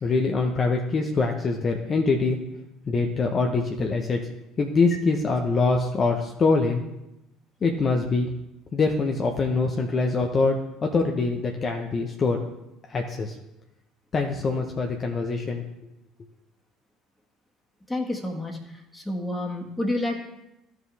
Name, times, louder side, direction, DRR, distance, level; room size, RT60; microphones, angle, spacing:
voice 1, 0.0-2.4 2.9-4.2 4.6-6.8 7.6-8.3 8.7-12.4 12.9-13.4 14.1-15.6, left 3 dB, 40° left, 2 dB, 0.8 m, -24 dB
voice 2, 17.9-18.6 18.9-20.2, left 1 dB, 10° left, 1 dB, 1.7 m, -29 dB
13.5 x 4.8 x 3.4 m, 0.90 s
hypercardioid pair, 65°, 0 cm